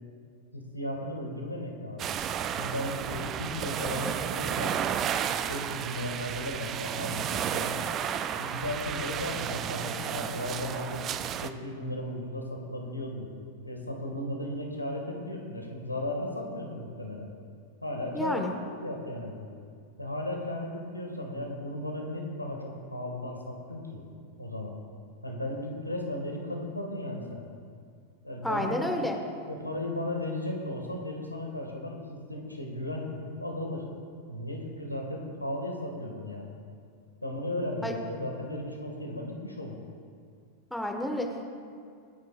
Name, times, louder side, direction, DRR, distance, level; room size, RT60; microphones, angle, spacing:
voice 1, 0.5-2.1 2.6-4.9 5.5-7.8 8.4-11.1 11.4-13.3 13.6-17.3 17.8-18.4 18.8-19.5 20.0-24.0 24.4-24.8 25.2-27.4 28.2-28.8 29.5-33.8 34.3-36.5 37.2-39.8, left 1 dB, 85° left, 1 dB, 1.9 m, -35 dB
sound 1, 2.0-11.5, right 9 dB, 30° right, 0.6 m, -32 dB
voice 2, 18.1-18.5 28.4-29.2 37.8-37.9 40.7-41.5, left 1 dB, 5° left, 2 dB, 1.5 m, -30 dB
26.0 x 9.4 x 2.5 m, 2.3 s
figure-of-eight pair, 90°, 0 cm